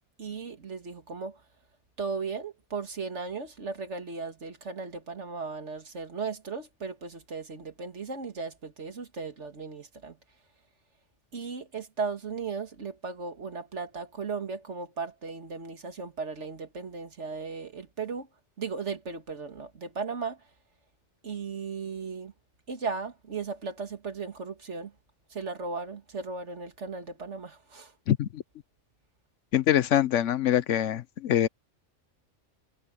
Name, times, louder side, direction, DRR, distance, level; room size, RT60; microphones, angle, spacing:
voice 1, 0.2-1.4 2.0-10.2 11.3-18.3 18.6-20.4 21.2-22.3 22.7-24.9 25.3-27.9, right 4 dB, 75° right, 2.2 m, -36 dB
voice 2, 28.1-28.4 29.5-31.5, left 11 dB, 85° left, 1.1 m, -24 dB
omnidirectional pair, 1.2 m